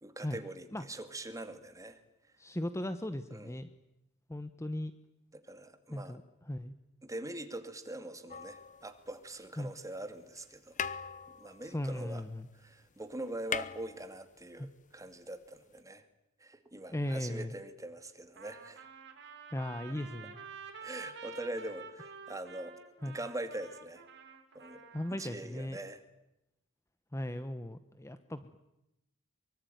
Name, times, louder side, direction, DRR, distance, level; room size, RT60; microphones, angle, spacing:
voice 1, 0.0-2.0 3.3-3.5 5.3-6.2 7.0-10.8 11.4-12.2 12.5-16.0 16.4-18.9 20.8-22.8 23.1-24.0 24.5-24.8 25.2-26.0, right 1 dB, 15° right, 8 dB, 2.3 m, -43 dB
voice 2, 2.4-3.7 4.3-4.9 5.9-6.7 9.6-9.7 11.6-12.5 14.6-14.7 16.9-17.5 19.5-20.4 23.0-23.2 24.9-25.8 27.1-28.6, left 1 dB, 15° left, 11 dB, 1.0 m, -37 dB
sound 1, 8.3-9.5 10.4-10.5 10.7-12.6 12.9-13.0 13.2-14.6 15.8-15.9, left 6 dB, 35° left, 1.0 m, -40 dB
Trumpet, 18.4-25.4, right 5 dB, 55° right, 3.7 m, -49 dB
24.0 x 23.5 x 9.3 m, 0.89 s
head